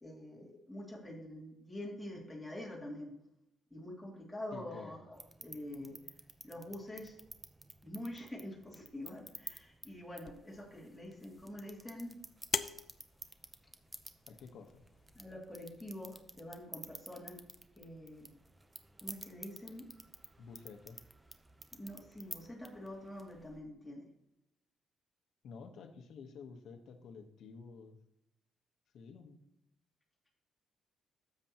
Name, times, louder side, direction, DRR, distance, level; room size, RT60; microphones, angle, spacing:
voice 1, 0.0-3.2 3.7-6.0 6.4-7.1 7.8-12.2 15.2-17.4 17.8-18.3 19.0-19.9 21.8-24.1, left 1 dB, 5° left, -5 dB, 2.6 m, -46 dB
voice 2, 4.5-5.0 14.3-14.8 20.4-21.0 25.4-28.0 28.9-29.4, left 5 dB, 70° left, 6 dB, 1.1 m, -51 dB
sound 1, 5.1-23.6, right 2 dB, 15° right, 0.8 m, -53 dB
sound 2, 10.2-15.2, left 6 dB, 50° left, 0.5 m, -44 dB
12.5 x 7.9 x 3.0 m, 0.86 s
cardioid pair, 90°, 0 cm